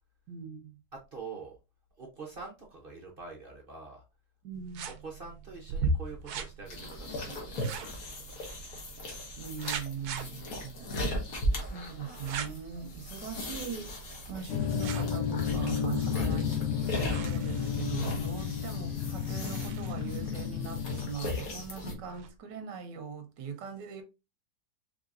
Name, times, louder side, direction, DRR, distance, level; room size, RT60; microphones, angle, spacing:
voice 1, 0.3-0.8 4.4-4.9 9.4-11.0 11.6-14.0 14.3-16.5 16.9-24.0, right 7 dB, 90° right, 1.5 m, -41 dB
voice 2, 0.9-1.6 2.0-4.0 5.0-8.6 16.1-16.3, right 4 dB, 45° right, 0.7 m, -46 dB
sound 1, 4.5-22.3, right 3 dB, 70° right, 1.1 m, -41 dB
sound 2, 6.7-21.9, left 1 dB, 55° left, 1.5 m, -38 dB
sound 3, 14.5-21.1, left 8 dB, 75° left, 0.7 m, -32 dB
4.9 x 3.3 x 2.5 m
omnidirectional pair, 1.9 m